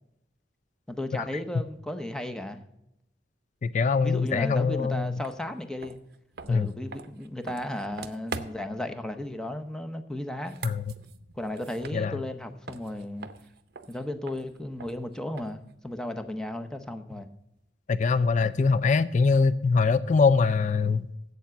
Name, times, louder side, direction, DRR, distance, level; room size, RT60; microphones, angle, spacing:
voice 1, 0.9-2.6 4.0-6.0 6.5-10.6 11.4-13.3 13.9-17.3, left 1 dB, 5° left, 0.7 m, -34 dB
voice 2, 3.6-5.2 6.5-6.7 10.6-10.8 11.9-12.2 17.9-21.1, left 4 dB, 40° left, 0.4 m, -23 dB
sound 1, 5.2-5.4 5.8-8.8 10.3-12.4 12.7-15.7, right 4 dB, 60° right, 0.6 m, -43 dB
8.1 x 7.1 x 7.5 m
head